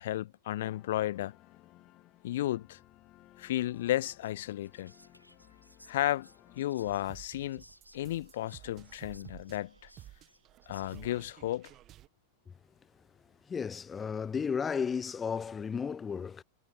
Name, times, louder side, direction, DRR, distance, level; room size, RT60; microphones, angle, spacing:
voice 1, 0.0-1.4 2.2-2.8 3.4-4.9 5.9-6.3 6.6-7.6 7.9-9.7 10.7-11.7, left 14 dB, 55° left, 0.9 m, -33 dB
sound 1, 0.6-6.6, left 16 dB, 35° left, 2.7 m, -59 dB
Whispering, 3.7-11.2, equal, 90° right, 3.9 m, -61 dB
sound 2, 6.8-12.1, right 14 dB, 35° right, 1.4 m, -53 dB
voice 2, 13.5-16.4, left 6 dB, 20° left, 0.3 m, -33 dB
figure-of-eight pair, 90°, 0 cm